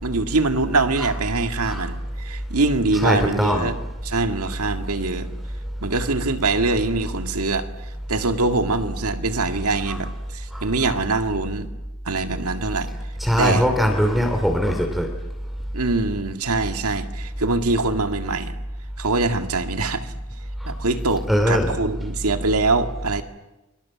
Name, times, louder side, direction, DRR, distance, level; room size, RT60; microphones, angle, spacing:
voice 1, 0.0-3.7 4.0-5.3 5.8-7.7 8.1-11.7 12.1-12.9 13.4-13.6 15.7-18.6 19.0-20.1 20.6-23.2, right 3 dB, 85° right, 8 dB, 2.0 m, -23 dB
voice 2, 3.0-3.7 9.9-10.0 10.5-10.9 13.2-15.1 20.6-20.7 21.3-21.8, equal, ahead, 4 dB, 2.7 m, -21 dB
29.0 x 23.5 x 7.4 m, 1.0 s
head